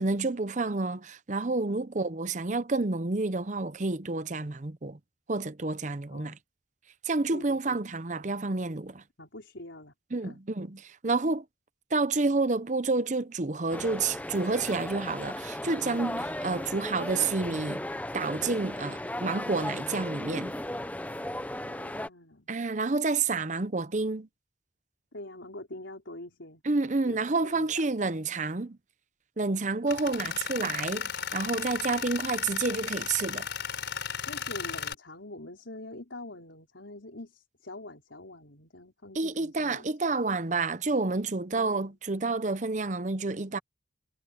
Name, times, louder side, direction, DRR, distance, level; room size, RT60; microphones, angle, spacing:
voice 1, 0.0-5.0 5.3-6.4 7.0-9.0 10.1-11.4 11.9-17.8 18.1-20.6 22.5-24.3 26.6-28.8 29.4-33.5 39.1-43.6, right 3 dB, 40° right, 0.7 m, -29 dB
voice 2, 7.3-7.8 9.2-9.9 10.2-10.4 16.2-16.3 21.6-22.5 25.1-26.6 27.0-27.7 30.0-30.4 34.2-39.8 41.5-41.8, left 1 dB, 85° left, 4.5 m, -45 dB
sound 1, 13.7-22.1, left 1 dB, 10° left, 0.7 m, -36 dB
Tools, 29.9-34.9, left 7 dB, 70° left, 4.3 m, -35 dB
head